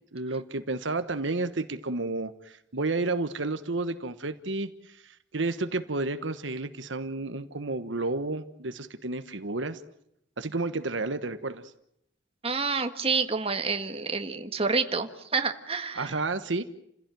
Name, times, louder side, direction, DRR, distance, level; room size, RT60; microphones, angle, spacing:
voice 1, 0.1-9.8 10.4-11.6 15.9-16.6, right 3 dB, 70° right, 9 dB, 1.3 m, -31 dB
voice 2, 12.4-16.2, right 4 dB, 30° right, 7 dB, 1.8 m, -28 dB
29.0 x 16.5 x 9.2 m, 0.78 s
head